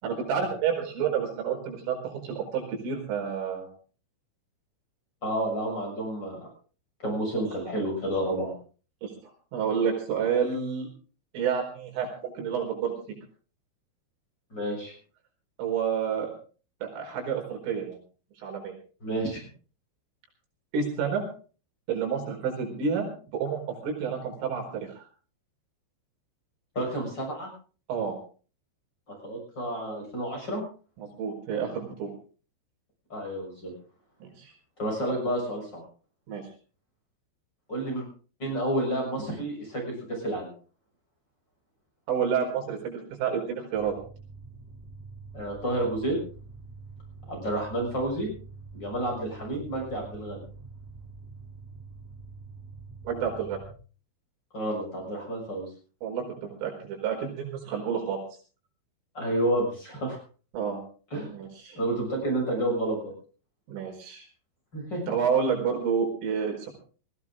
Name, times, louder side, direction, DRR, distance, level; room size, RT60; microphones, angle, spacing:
voice 1, 0.0-3.7 7.3-7.4 9.0-10.9 11.3-13.0 15.6-16.3 16.8-18.0 18.4-18.7 20.7-21.2 21.9-25.0 27.9-28.2 31.0-32.1 34.2-34.5 36.3-36.4 42.1-43.9 53.1-53.6 56.0-58.2 60.5-60.8 61.3-61.8 63.7-64.3 65.1-66.7, right 7 dB, 80° right, 1 dB, 7.2 m, -29 dB
voice 2, 5.2-6.5 7.0-8.5 14.5-14.9 19.0-19.5 26.8-27.5 29.2-30.6 33.1-33.7 34.8-35.8 37.7-38.1 38.4-40.5 45.3-46.2 47.3-48.3 48.7-50.4 54.5-55.7 59.2-60.2 61.1-61.3 61.8-63.1 64.7-65.1, right 1 dB, 20° left, 0 dB, 7.0 m, -30 dB
sound 1, 43.7-53.7, right 4 dB, 10° right, 0.9 m, -46 dB
20.5 x 15.5 x 3.8 m, 0.39 s
omnidirectional pair, 5.7 m